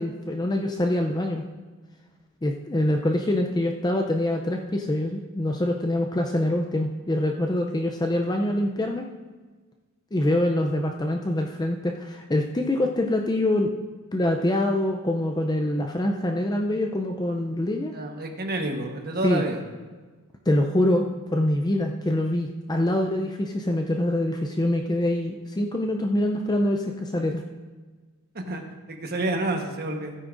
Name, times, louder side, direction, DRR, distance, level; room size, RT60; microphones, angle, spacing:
voice 1, 0.0-1.4 2.4-9.0 10.1-13.8 14.1-17.9 19.2-19.4 20.5-21.1 21.3-27.4, left 1 dB, 20° left, 2 dB, 0.5 m, -25 dB
voice 2, 17.9-19.6 28.3-28.6 28.9-30.1, right 2 dB, 45° right, 3 dB, 1.3 m, -29 dB
16.0 x 9.6 x 2.6 m, 1.4 s
head